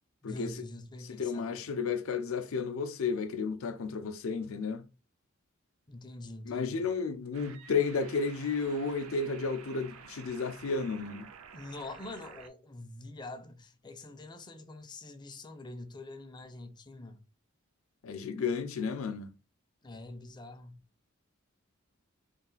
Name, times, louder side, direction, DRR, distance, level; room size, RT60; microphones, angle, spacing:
voice 1, 0.2-1.6 5.9-6.9 11.5-17.2 19.8-20.8, left 2 dB, 20° left, 0.4 m, -45 dB
voice 2, 1.1-4.8 6.5-11.3 18.0-19.3, left 5 dB, 70° left, 0.5 m, -32 dB
sound 1, 7.3-12.5, right 6 dB, 85° right, 0.5 m, -51 dB
3.2 x 2.4 x 3.8 m
head